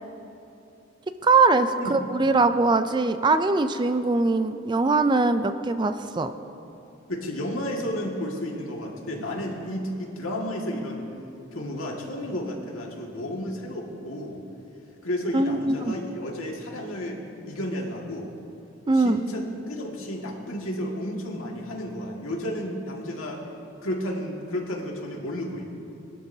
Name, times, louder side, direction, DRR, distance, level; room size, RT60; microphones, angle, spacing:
voice 1, 1.2-6.3 15.3-15.9 18.9-19.2, right 3 dB, 20° right, 10 dB, 0.3 m, -22 dB
voice 2, 7.1-11.1 11.5-14.4 15.0-17.2 17.4-18.3 18.9-23.4 23.8-25.7, equal, 80° left, -1 dB, 1.9 m, -32 dB
21.0 x 12.5 x 2.7 m, 2.8 s
head